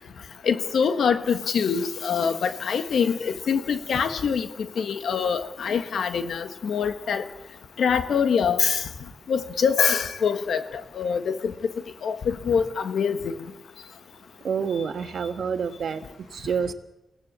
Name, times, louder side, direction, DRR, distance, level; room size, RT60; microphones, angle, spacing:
voice 1, 0.4-7.2 7.8-8.8 9.3-10.6 10.9-11.5 12.0-13.3, left 6 dB, 80° left, 9 dB, 1.5 m, -24 dB
voice 2, 14.4-16.7, right 6 dB, 75° right, 8 dB, 1.4 m, -28 dB
23.5 x 17.5 x 8.3 m, 0.96 s
cardioid pair, 65°, 0 cm